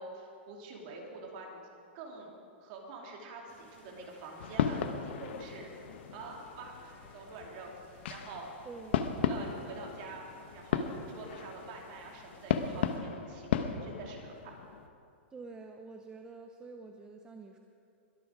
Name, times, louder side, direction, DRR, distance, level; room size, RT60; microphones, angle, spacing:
voice 1, 0.0-1.6 1.9-2.3 2.6-5.7 6.1-8.5 9.3-10.3 10.5-14.5, right 3 dB, 45° right, 0 dB, 3.0 m, -46 dB
sound 1, 3.5-13.0, left 2 dB, 30° left, 3.7 m, -60 dB
sound 2, 4.4-14.9, left 7 dB, 65° left, 1.0 m, -36 dB
voice 2, 8.6-9.0 15.3-17.6, right 4 dB, 10° right, 4 dB, 0.6 m, -47 dB
22.5 x 8.7 x 5.1 m, 2.4 s
hypercardioid pair, 145°, 6 cm